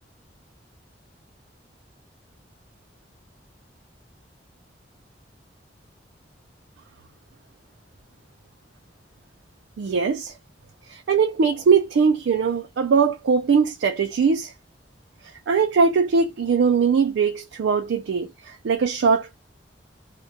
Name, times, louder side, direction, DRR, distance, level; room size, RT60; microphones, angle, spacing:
voice 1, 9.8-10.3 10.9-14.5 15.5-19.4, right 5 dB, 80° right, 0.4 m, -21 dB
2.2 x 2.0 x 2.6 m
head